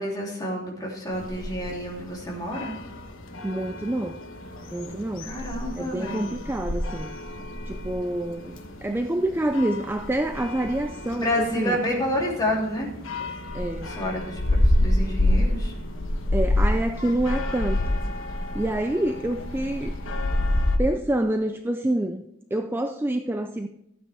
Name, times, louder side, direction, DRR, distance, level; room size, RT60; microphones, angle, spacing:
voice 1, 0.0-2.8 5.2-6.4 11.1-12.9 13.8-15.7, left 1 dB, 20° left, -3 dB, 3.1 m, -29 dB
sound 1, 1.1-20.8, left 1 dB, 70° left, 1.2 m, -28 dB
voice 2, 3.4-4.2 4.7-5.3 5.8-7.1 7.7-11.8 13.5-13.9 16.3-17.8 18.5-19.9 20.8-22.2 22.5-23.7, right 1 dB, 10° right, 6 dB, 0.4 m, -27 dB
14.5 x 9.0 x 3.5 m, 0.81 s
head